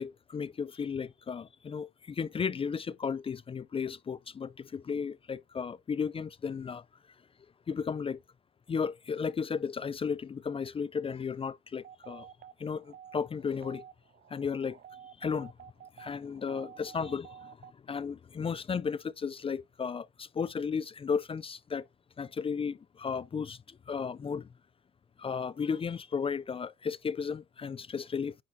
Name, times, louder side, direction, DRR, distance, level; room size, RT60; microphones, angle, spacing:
voice 1, 0.0-6.8 7.7-8.2 8.7-12.3 12.6-13.9 14.3-14.8 15.2-15.5 16.0-21.9 22.2-24.5 25.2-28.4, left 6 dB, 30° left, 0.4 m, -34 dB
sound 1, 11.8-17.7, right 9 dB, 55° right, 0.6 m, -51 dB
9.8 x 4.6 x 2.7 m
cardioid pair, 90°, 20 cm